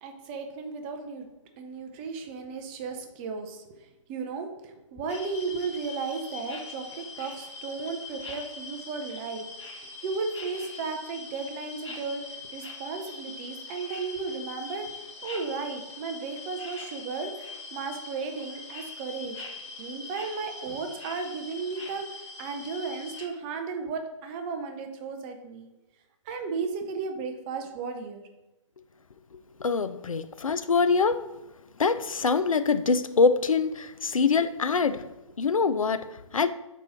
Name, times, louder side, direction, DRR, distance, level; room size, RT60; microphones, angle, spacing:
voice 1, 0.0-1.3 1.6-19.4 19.8-25.7 26.3-28.2, right 4 dB, 20° right, 5 dB, 0.5 m, -35 dB
sound 1, 5.1-23.3, left 4 dB, 60° left, 1.3 m, -42 dB
voice 2, 29.6-31.2 31.8-35.1 35.4-36.5, left 4 dB, 85° left, 13 dB, 0.4 m, -24 dB
4.5 x 4.2 x 5.0 m, 1.0 s
figure-of-eight pair, 140°, 17 cm